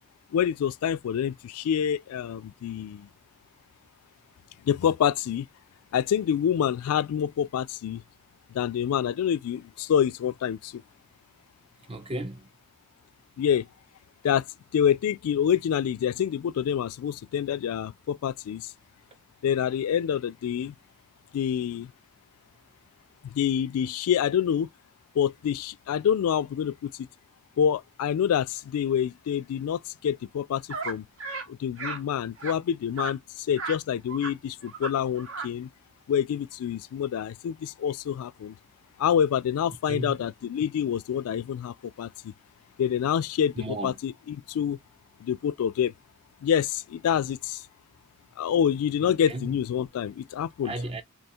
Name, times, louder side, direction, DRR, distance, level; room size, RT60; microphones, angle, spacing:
voice 1, 0.3-3.1 4.6-5.5 5.9-8.0 8.5-10.8 13.4-13.7 14.2-14.4 14.7-18.7 19.4-20.7 21.3-21.9 23.2-24.7 25.2-27.1 27.6-31.0 31.5-35.7 36.1-38.5 39.0-42.3 42.8-44.8 45.2-45.9 46.4-47.6 48.4-50.7, left 8 dB, 75° left, 0.3 m, -27 dB
voice 2, 11.9-12.5 39.9-40.2 43.6-43.9 49.0-49.5 50.6-51.0, right 1 dB, 25° right, 0.5 m, -34 dB
sound 1, 30.7-30.9 31.2-31.5 31.8-32.0 32.4-32.5 33.0-33.1 33.5-33.8 34.1-34.3 34.6-34.9 35.2-35.5, right 4 dB, 65° right, 0.9 m, -34 dB
3.0 x 2.3 x 4.2 m
head